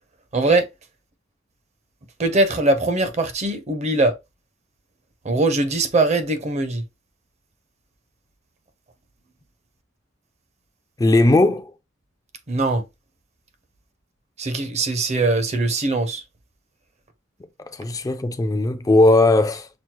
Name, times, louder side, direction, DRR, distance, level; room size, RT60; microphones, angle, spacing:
voice 1, 0.3-0.7 2.2-4.1 5.2-6.8 12.5-12.8 14.4-16.2, right 2 dB, 35° right, 0.6 m, -21 dB
voice 2, 11.0-11.7 17.7-19.7, left 2 dB, 20° left, 0.3 m, -17 dB
6.0 x 2.0 x 2.8 m
head